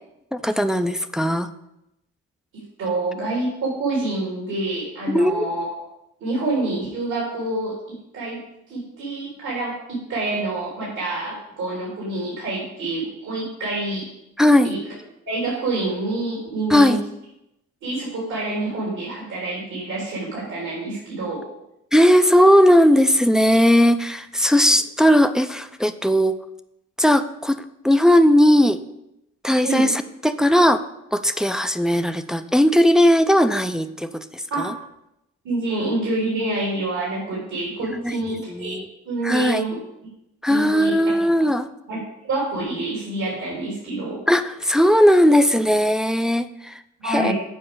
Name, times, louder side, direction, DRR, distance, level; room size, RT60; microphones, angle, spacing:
voice 1, 0.3-1.5 5.1-5.5 14.4-14.8 16.7-17.0 21.9-26.4 27.0-28.8 29.4-30.8 31.1-34.7 37.9-38.1 38.5-38.9 39.2-39.6 40.4-41.7 44.3-47.3, equal, ahead, 9 dB, 0.4 m, -18 dB
voice 2, 2.5-5.7 6.2-8.4 8.7-14.1 14.6-14.8 15.3-17.0 17.8-21.4 29.6-29.9 34.5-34.7 35.4-38.8 39.0-39.8 40.5-41.5 41.9-44.2 47.0-47.3, right 2 dB, 70° right, -5 dB, 3.3 m, -27 dB
7.7 x 4.9 x 6.9 m, 0.86 s
cardioid pair, 90°, 30 cm